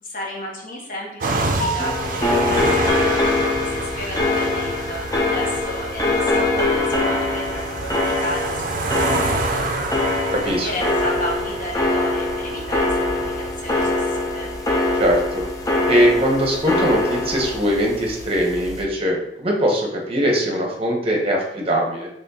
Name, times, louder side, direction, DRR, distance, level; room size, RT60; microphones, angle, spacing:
voice 1, 0.0-10.2 10.4-14.5, equal, 50° left, -2 dB, 1.0 m, -33 dB
sound 1, 1.2-13.9, right 3 dB, 50° right, 0.4 m, -29 dB
Piano, 1.6-5.6 5.9-6.0 6.5-6.6 7.0-7.1 10.2-10.3 18.7-19.0, right 1 dB, 75° left, 0.8 m, -35 dB
sound 2, 1.8-18.8, left 2 dB, 20° left, 0.5 m, -23 dB
voice 2, 10.3-10.7 15.0-15.4 15.9-22.1, equal, 35° right, 0 dB, 0.8 m, -21 dB
4.2 x 3.2 x 2.7 m, 0.83 s
head